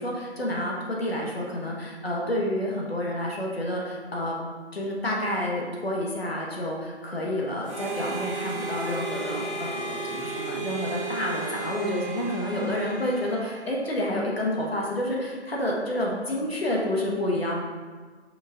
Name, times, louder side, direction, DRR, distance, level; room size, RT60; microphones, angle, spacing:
voice 1, 0.0-4.4 4.7-17.6, left 1 dB, 60° left, -2 dB, 1.7 m, -29 dB
Harmonica, 7.6-14.0, right 3 dB, 25° right, 1.5 m, -34 dB
5.9 x 5.1 x 4.0 m, 1.4 s
figure-of-eight pair, 170°, 34 cm